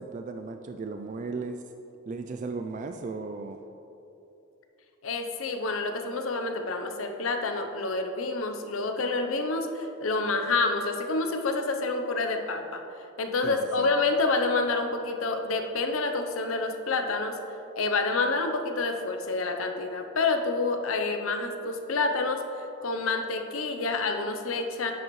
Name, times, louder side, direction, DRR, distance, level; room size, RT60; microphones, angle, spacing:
voice 1, 0.0-1.6 2.1-3.6 13.4-13.9, right 4 dB, 35° right, 6 dB, 0.3 m, -36 dB
voice 2, 5.0-12.8 13.2-17.4 17.8-24.9, left 3 dB, 85° left, 5 dB, 0.7 m, -28 dB
10.0 x 7.9 x 3.1 m, 3.0 s
head